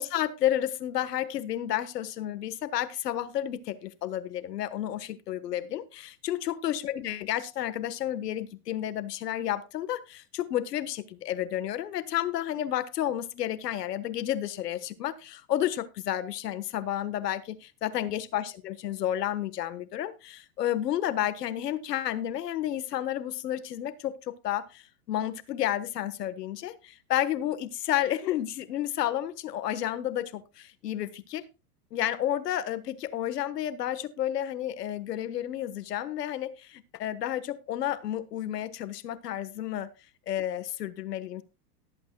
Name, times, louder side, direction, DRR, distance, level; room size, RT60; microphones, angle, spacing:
voice 1, 0.0-31.4 31.9-39.9 40.3-41.4, left 12 dB, 80° left, 1.4 m, -31 dB
18.5 x 8.4 x 2.3 m
hypercardioid pair, 120°, 47 cm